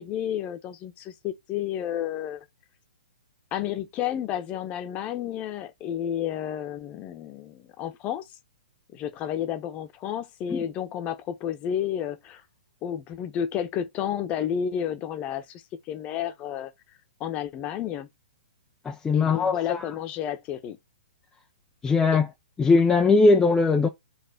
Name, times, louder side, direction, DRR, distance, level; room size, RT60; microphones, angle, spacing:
voice 1, 0.0-2.4 3.5-8.3 8.9-12.4 12.8-16.7 17.2-18.1 19.1-20.8, left 10 dB, 25° left, 1.2 m, -31 dB
voice 2, 18.8-19.9 21.8-22.3 22.6-23.9, left 3 dB, 10° left, 0.7 m, -20 dB
4.6 x 4.2 x 5.1 m
figure-of-eight pair, 120°, 5 cm